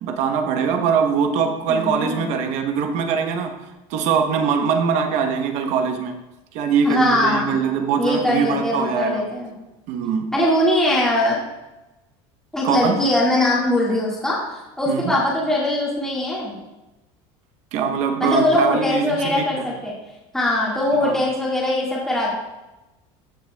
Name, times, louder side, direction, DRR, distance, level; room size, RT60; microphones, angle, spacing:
voice 1, 0.0-6.2 6.5-9.2 9.9-10.3 12.6-13.0 14.9-15.2 17.7-19.7 21.0-21.2, right 6 dB, 60° right, 6 dB, 0.9 m, -22 dB
voice 2, 1.7-2.2 6.8-7.5 8.0-9.5 10.3-11.4 12.5-16.5 18.2-20.0 20.3-22.3, left 1 dB, 5° left, -6 dB, 1.8 m, -21 dB
14.0 x 5.6 x 2.3 m, 1.0 s
cardioid pair, 150°, 14 cm